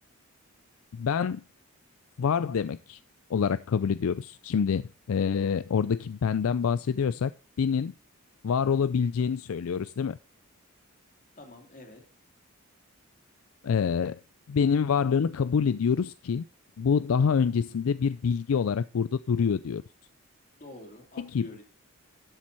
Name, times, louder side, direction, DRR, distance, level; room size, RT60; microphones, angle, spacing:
voice 1, 0.9-1.4 2.2-3.0 3.3-7.3 7.6-7.9 8.4-10.2 13.6-14.2 14.5-16.4 16.8-19.8 21.2-21.5, left 6 dB, 70° left, 0.4 m, -26 dB
voice 2, 11.4-12.0 20.6-21.6, left 1 dB, 40° left, 3.0 m, -47 dB
12.0 x 7.4 x 4.1 m
head